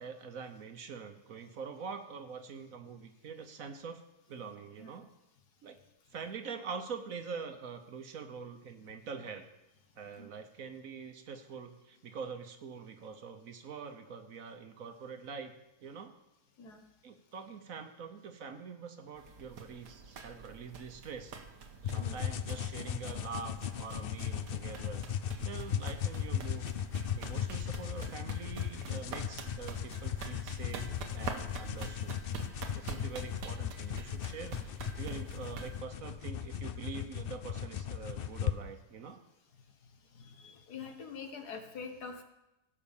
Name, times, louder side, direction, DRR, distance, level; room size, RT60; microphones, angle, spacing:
voice 1, 0.0-4.0 4.3-5.1 5.6-5.8 6.1-9.5 10.0-16.1 17.0-21.4 21.8-25.0 25.4-26.7 27.2-32.2 32.7-39.2, right 5 dB, 60° right, 7 dB, 1.2 m, -44 dB
sound 1, 19.2-35.8, right 5 dB, 90° right, 1.7 m, -46 dB
sound 2, 21.8-38.6, left 9 dB, 90° left, 0.5 m, -37 dB
voice 2, 26.9-27.4 32.9-33.1 40.1-42.2, left 5 dB, 70° left, 5 dB, 1.8 m, -46 dB
16.5 x 5.7 x 7.2 m, 0.95 s
omnidirectional pair, 1.8 m